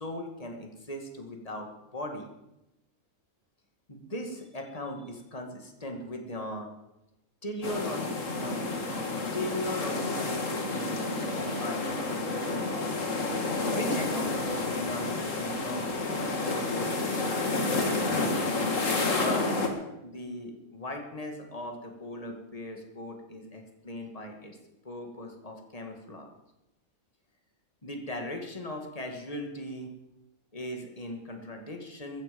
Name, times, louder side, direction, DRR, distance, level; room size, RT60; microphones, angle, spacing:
voice 1, 0.0-2.3 3.9-6.7 7.4-8.7 9.3-11.9 13.7-18.8 19.2-19.6 20.0-24.6 24.8-26.3 27.8-29.9 30.5-32.2, left 1 dB, 25° left, 3 dB, 2.2 m, -38 dB
sound 1, 7.6-19.7, left 3 dB, 60° left, 2.3 m, -30 dB
15.0 x 14.5 x 5.3 m, 0.91 s
omnidirectional pair, 1.5 m